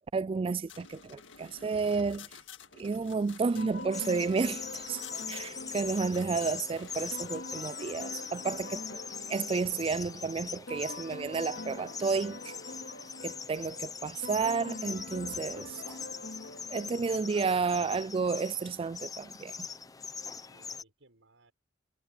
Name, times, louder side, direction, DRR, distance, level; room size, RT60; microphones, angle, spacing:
voice 1, 0.1-2.3 2.8-5.0 5.3-9.0 9.3-12.5 13.2-15.8 16.7-19.5, right 4 dB, 30° right, 0.3 m, -31 dB
sound 1, 0.7-7.4, left 7 dB, 85° left, 1.9 m, -52 dB
sound 2, 3.6-17.8, left 2 dB, 65° left, 3.1 m, -45 dB
sound 3, 3.9-20.8, left 6 dB, 20° left, 0.7 m, -42 dB
voice 2, 20.2-21.5, right 2 dB, 90° right, 7.1 m, -61 dB
head